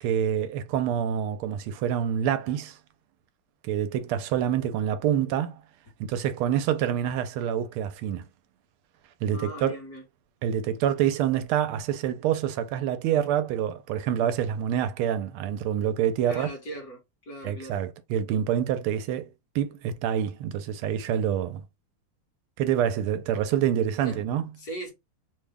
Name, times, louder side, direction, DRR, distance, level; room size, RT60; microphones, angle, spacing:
voice 1, 0.0-2.8 3.6-5.6 6.0-8.2 9.2-9.8 10.4-16.5 17.4-19.3 19.5-21.6 22.6-24.4, right 9 dB, 85° right, 1.5 m, -26 dB
voice 2, 9.3-10.0 16.3-17.8 24.0-24.2 24.6-24.9, right 1 dB, 45° left, 1.6 m, -38 dB
3.7 x 2.1 x 3.3 m
omnidirectional pair, 2.3 m